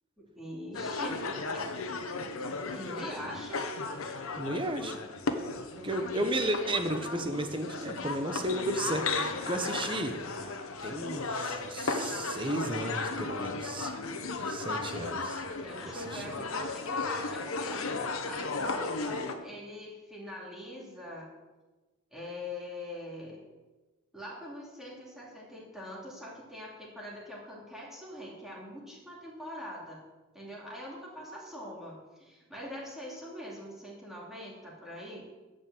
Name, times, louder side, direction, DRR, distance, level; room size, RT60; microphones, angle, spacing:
voice 1, 0.2-1.7 2.7-3.7 5.7-6.2 15.4-21.3 22.1-23.4 24.1-30.0 30.3-35.3, equal, ahead, -5 dB, 2.8 m, -43 dB
sound 1, 0.7-19.3, left 3 dB, 80° left, 1.0 m, -35 dB
voice 2, 4.4-5.0 5.8-10.2 10.8-14.0 14.4-15.4 15.9-16.2, right 1 dB, 25° right, 7 dB, 1.0 m, -33 dB
11.0 x 5.4 x 7.9 m, 1.2 s
head